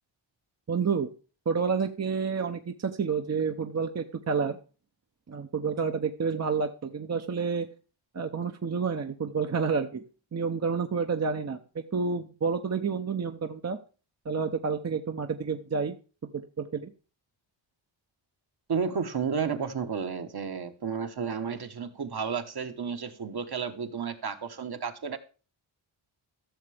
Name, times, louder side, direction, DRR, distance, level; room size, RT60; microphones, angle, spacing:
voice 1, 0.7-1.1 1.5-4.6 5.3-7.7 8.1-10.0 10.3-13.8 14.2-16.0 16.2-16.9, right 5 dB, 35° right, 5 dB, 0.8 m, -29 dB
voice 2, 18.7-25.2, right 6 dB, 50° right, 7 dB, 1.2 m, -32 dB
15.0 x 6.7 x 3.4 m, 0.35 s
wide cardioid pair, 85°, 48 cm